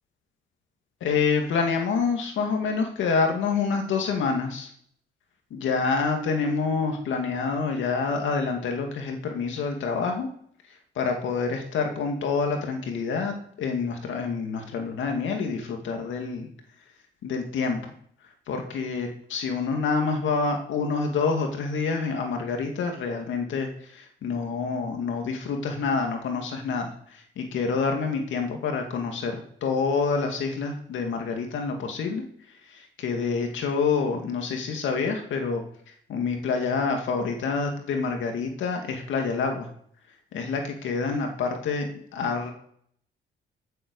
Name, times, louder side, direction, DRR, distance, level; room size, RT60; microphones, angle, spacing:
voice 1, 1.0-4.7 5.5-10.3 11.0-16.5 17.2-17.8 18.5-32.2 32.7-35.6 36.1-39.7 40.3-42.5, left 5 dB, 75° left, 3 dB, 2.2 m, -27 dB
14.5 x 7.8 x 5.4 m, 0.65 s
cardioid pair, 90°, 20 cm